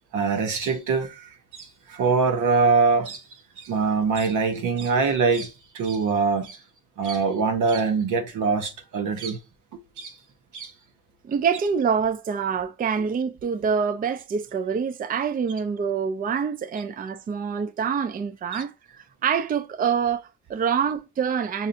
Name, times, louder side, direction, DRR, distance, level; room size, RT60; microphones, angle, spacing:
voice 1, 0.1-3.2 3.6-6.6 7.0-9.4 10.0-10.1 10.5-10.7 18.5-18.6, right 4 dB, 85° right, 0.9 m, -23 dB
voice 2, 11.2-21.7, right 6 dB, 30° right, 0.4 m, -26 dB
5.4 x 2.7 x 2.5 m
cardioid pair, 90°, 30 cm